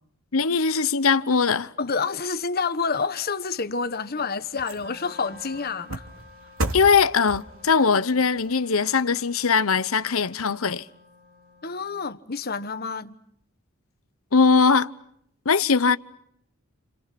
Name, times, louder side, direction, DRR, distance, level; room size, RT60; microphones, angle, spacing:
voice 1, 0.3-1.7 6.7-10.9 14.3-14.9 15.4-16.0, left 5 dB, 75° left, 1.0 m, -20 dB
voice 2, 1.8-6.0 11.6-13.2, left 5 dB, 45° left, 1.2 m, -28 dB
sound 1, 3.6-10.1 10.6-10.7, right 1 dB, 75° right, 2.9 m, -37 dB
Wind instrument woodwind instrument, 4.8-11.9, left 3 dB, 40° right, 5.5 m, -51 dB
30.0 x 29.0 x 5.9 m
head